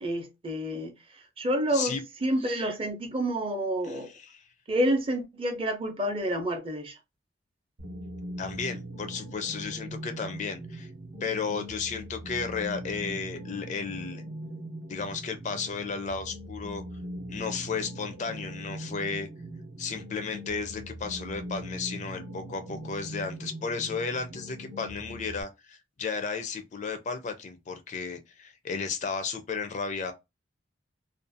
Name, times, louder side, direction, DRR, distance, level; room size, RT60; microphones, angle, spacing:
voice 1, 0.0-4.1 4.7-6.9, equal, 30° right, 0.5 m, -29 dB
voice 2, 3.8-4.4 8.4-10.9 11.2-14.2 14.9-16.8 17.3-19.3 19.8-30.1, left 5 dB, 40° left, 0.4 m, -34 dB
sound 1, 7.8-25.4, right 1 dB, 65° right, 0.7 m, -41 dB
2.5 x 2.2 x 2.5 m
head